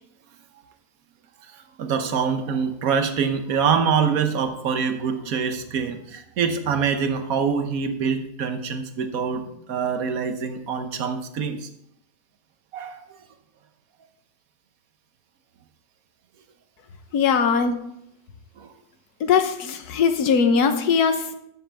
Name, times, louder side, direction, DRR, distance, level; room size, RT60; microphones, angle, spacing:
voice 1, 1.8-11.7 12.7-13.0 18.6-18.7, right 6 dB, 65° right, 8 dB, 1.3 m, -25 dB
voice 2, 17.1-17.8 19.2-21.4, left 6 dB, 85° left, 8 dB, 1.4 m, -20 dB
12.5 x 7.9 x 3.4 m, 0.79 s
omnidirectional pair, 1.6 m